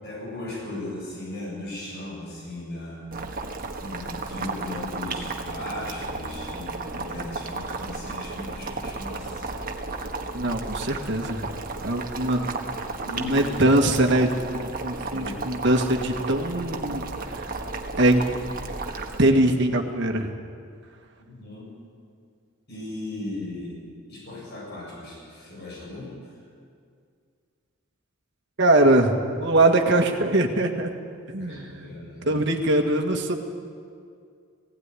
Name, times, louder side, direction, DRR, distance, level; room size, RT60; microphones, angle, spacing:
voice 1, 0.0-3.4 3.8-9.4 13.0-13.5 15.1-15.6 21.2-21.7 22.7-23.8 24.1-26.3 31.4-32.4, left 1 dB, 50° left, -4 dB, 7.8 m, -37 dB
Boiling, 3.1-19.2, right 3 dB, 45° right, 1.5 m, -34 dB
voice 2, 10.3-11.5 11.8-12.5 13.2-14.3 14.5-17.0 17.3-17.5 18.0-18.2 19.2-20.3 28.6-29.1 29.4-31.0 31.3-31.9 32.3-33.3, right 1 dB, 60° right, 3 dB, 1.8 m, -22 dB
17.0 x 16.5 x 9.8 m, 2.2 s
head